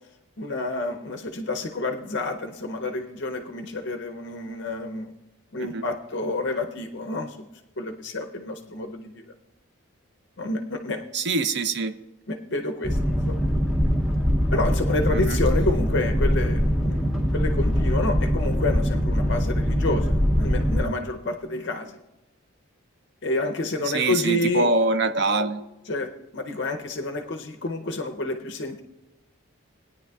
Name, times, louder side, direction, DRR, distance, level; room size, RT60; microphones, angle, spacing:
voice 1, 0.4-5.1 5.5-7.5 7.8-9.2 10.4-11.0 12.3-13.5 14.5-22.0 23.2-24.7 25.9-28.8, left 2 dB, 55° left, 5 dB, 0.6 m, -29 dB
voice 2, 11.1-12.0 15.1-15.4 23.9-25.6, right 3 dB, 55° right, 9 dB, 0.5 m, -24 dB
Boat Water vehicle, 12.8-20.8, equal, ahead, 0.6 m, -23 dB
20.0 x 9.6 x 2.3 m, 1.0 s
head